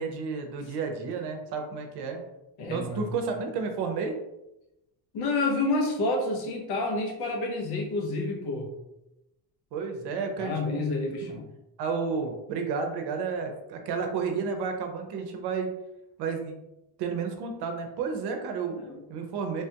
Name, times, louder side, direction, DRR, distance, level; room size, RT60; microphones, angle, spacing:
voice 1, 0.0-2.2 2.7-4.2 9.7-10.9 11.2-11.3 11.8-15.7 16.2-16.6 17.0-18.8 19.1-19.6, right 5 dB, 80° right, 4 dB, 0.7 m, -31 dB
voice 2, 2.6-3.1 5.1-8.7 10.4-11.5 18.7-19.0, left 2 dB, 75° left, 1 dB, 0.9 m, -29 dB
3.3 x 2.2 x 2.8 m, 0.91 s
cardioid pair, 160°, 39 cm